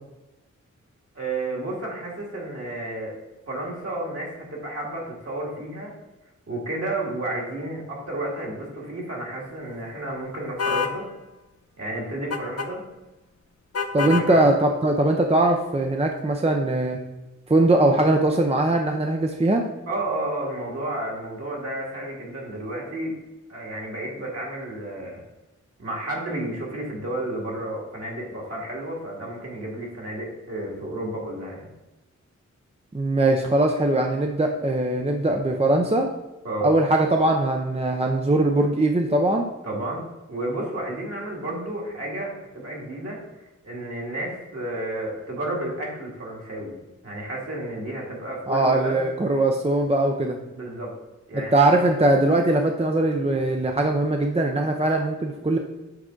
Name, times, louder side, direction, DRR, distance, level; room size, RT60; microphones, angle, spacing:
voice 1, 1.1-3.1 3.5-5.9 6.5-11.1 11.8-12.8 14.0-14.4 19.9-23.1 23.5-25.2 25.8-31.7 36.4-36.8 39.6-43.2 43.6-46.7 47.0-49.0 50.6-50.9 51.3-51.7, right 1 dB, 50° right, -3 dB, 2.1 m, -31 dB
sound 1, 10.6-11.0 12.3-12.7 13.7-14.3, left 5 dB, 55° left, 0.6 m, -26 dB
voice 2, 13.9-17.0 17.5-19.6 32.9-36.1 36.6-39.5 48.5-50.4 51.5-55.6, right 2 dB, 20° right, 2 dB, 0.6 m, -21 dB
7.5 x 3.5 x 3.8 m, 1.0 s
cardioid pair, 60°, 31 cm